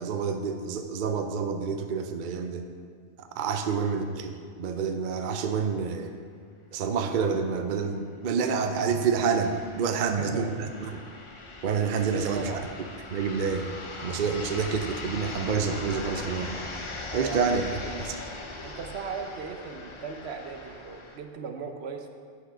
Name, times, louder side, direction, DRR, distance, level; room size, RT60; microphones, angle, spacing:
voice 1, 0.0-2.7 3.2-6.1 6.7-11.0 11.6-12.5 13.1-13.7 14.0-16.5 17.1-17.7 18.0-18.2, right 5 dB, 55° right, 6 dB, 0.7 m, -28 dB
sound 1, 8.4-21.2, left 2 dB, 35° left, 0.6 m, -40 dB
voice 2, 9.9-10.6 12.1-12.6 17.1-17.4 18.6-22.1, right 5 dB, 75° right, 5 dB, 1.0 m, -37 dB
8.0 x 6.5 x 4.9 m, 2.1 s
omnidirectional pair, 1.1 m